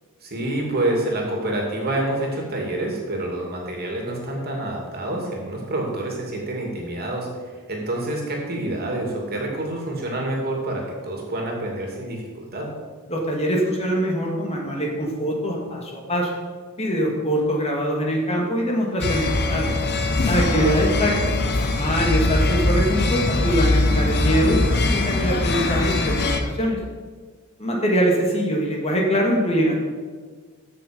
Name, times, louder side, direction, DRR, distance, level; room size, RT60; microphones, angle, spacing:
voice 1, 0.2-12.7 20.3-20.7, right 1 dB, 45° right, 0 dB, 2.6 m, -27 dB
voice 2, 13.1-16.3 16.8-19.7 20.2-21.2 21.5-26.8 27.6-29.8, equal, 30° left, -1 dB, 2.0 m, -23 dB
sound 1, 19.0-26.4, left 2 dB, 50° left, 1.0 m, -22 dB
15.0 x 6.5 x 5.3 m, 1.5 s
head